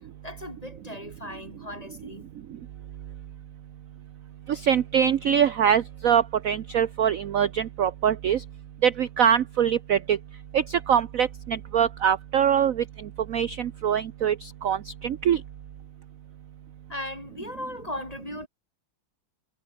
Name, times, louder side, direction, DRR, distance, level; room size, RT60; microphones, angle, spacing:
voice 1, 0.2-2.3 16.9-18.5, left 1 dB, 15° left, 3.6 m, -37 dB
voice 2, 4.5-8.4 8.8-10.2 10.5-12.8 13.3-15.4, right 8 dB, 60° right, 0.9 m, -23 dB
omnidirectional pair, 2.3 m